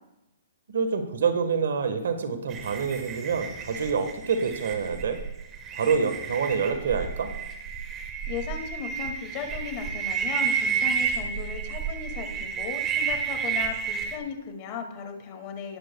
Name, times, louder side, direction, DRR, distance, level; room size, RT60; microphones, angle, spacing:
voice 1, 0.7-5.2 5.7-7.3, right 5 dB, 70° right, 9 dB, 1.4 m, -27 dB
sound 1, 2.5-14.2, right 6 dB, 25° right, 1.3 m, -31 dB
voice 2, 8.3-15.8, left 7 dB, 40° left, 4 dB, 2.2 m, -36 dB
19.5 x 7.8 x 2.3 m, 0.88 s
hypercardioid pair, 130°, 0 cm